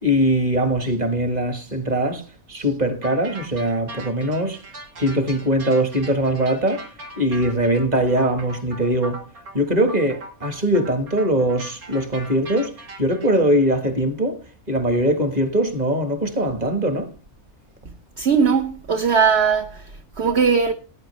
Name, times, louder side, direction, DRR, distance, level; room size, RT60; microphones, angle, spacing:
voice 1, 0.0-4.6 5.0-6.9 7.2-9.2 9.5-12.7 13.0-14.4 14.7-17.1, equal, 30° right, 1.7 m, -21 dB
sound 1, 3.0-13.3, right 2 dB, 90° right, 2.7 m, -39 dB
voice 2, 18.2-20.7, right 6 dB, 50° right, 1.1 m, -19 dB
17.5 x 9.3 x 3.3 m
omnidirectional pair, 1.5 m